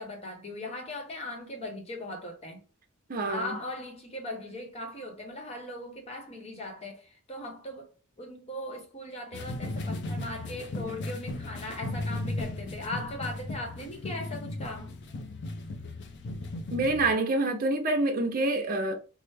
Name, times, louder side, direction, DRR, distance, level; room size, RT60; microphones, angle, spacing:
voice 1, 0.0-2.6 3.3-7.9 8.2-14.9, left 1 dB, 30° left, 1.0 m, -39 dB
voice 2, 3.1-3.6 16.7-19.0, right 2 dB, 45° right, 0.7 m, -27 dB
sound 1, 9.3-17.1, left 2 dB, 55° left, 0.5 m, -36 dB
4.4 x 2.0 x 3.3 m
head